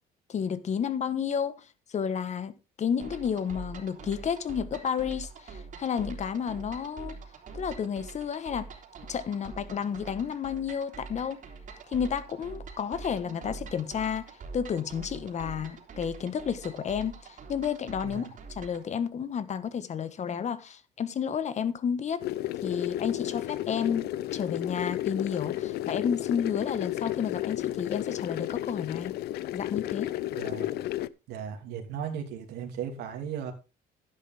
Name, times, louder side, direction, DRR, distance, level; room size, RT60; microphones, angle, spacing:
voice 1, 0.3-1.5 1.9-7.2 7.5-8.7 9.1-11.4 11.9-22.2 22.6-29.1 29.5-30.1, left 7 dB, 45° left, 1.4 m, -31 dB
sound 1, 3.0-18.9, right 4 dB, 50° right, 3.2 m, -44 dB
sound 2, 22.2-31.1, left 14 dB, 75° left, 0.6 m, -32 dB
voice 2, 30.4-30.7 31.3-33.5, right 8 dB, 85° right, 2.8 m, -36 dB
11.5 x 10.5 x 3.6 m
cardioid pair, 110°, 17 cm